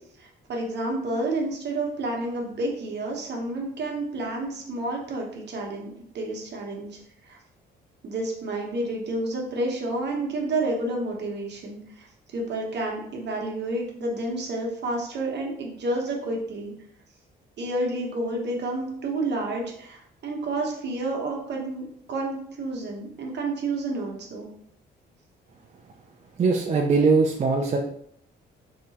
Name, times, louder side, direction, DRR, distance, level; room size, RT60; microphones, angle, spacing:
voice 1, 0.2-7.4 8.0-16.7 17.6-24.5, right 2 dB, 60° right, 0 dB, 1.0 m, -30 dB
voice 2, 26.4-27.8, right 4 dB, 35° right, 1 dB, 0.4 m, -21 dB
3.3 x 2.9 x 2.8 m, 0.68 s
cardioid pair, 90°, 20 cm